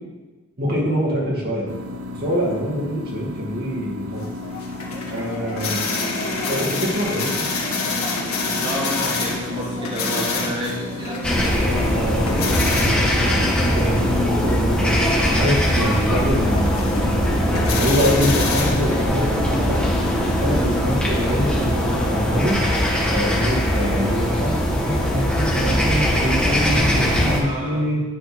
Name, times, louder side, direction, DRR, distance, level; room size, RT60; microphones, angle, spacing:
voice 1, 0.6-1.7 2.2-4.3 5.1-5.8 6.5-7.3 11.6-15.0 15.3-20.1 20.4-22.6 23.1-28.0, equal, 45° right, -4 dB, 2.6 m, -25 dB
sound 1, 1.7-21.4, left 3 dB, 80° right, 0.8 m, -34 dB
sound 2, 4.2-22.1, left 3 dB, 80° left, 1.8 m, -29 dB
voice 2, 8.6-12.0 27.4-27.9, equal, 25° right, -5 dB, 2.5 m, -30 dB
sound 3, 11.2-27.4, equal, 5° left, 1.8 m, -21 dB
9.8 x 4.4 x 6.1 m, 1.2 s
head